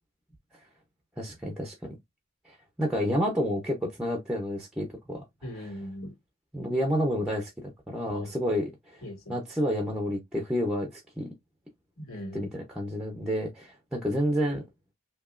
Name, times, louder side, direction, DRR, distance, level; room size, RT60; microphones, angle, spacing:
voice 1, 1.2-1.9 2.5-5.2 6.5-9.0 9.3-11.3 12.3-14.6, equal, 5° right, 0.7 m, -30 dB
voice 2, 5.4-6.1 8.1-8.7 9.0-9.4 12.0-12.6, equal, 75° left, 2.4 m, -40 dB
5.1 x 2.9 x 2.5 m
head